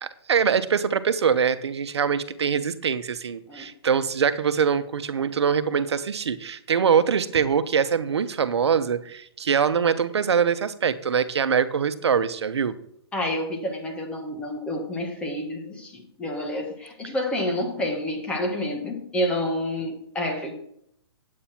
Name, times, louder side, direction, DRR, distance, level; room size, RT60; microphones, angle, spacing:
voice 1, 0.0-12.7, right 7 dB, 90° right, 12 dB, 1.0 m, -23 dB
voice 2, 13.1-20.6, left 1 dB, 10° left, 1 dB, 1.6 m, -29 dB
8.8 x 8.6 x 4.4 m, 0.69 s
hypercardioid pair, 160°, 14 cm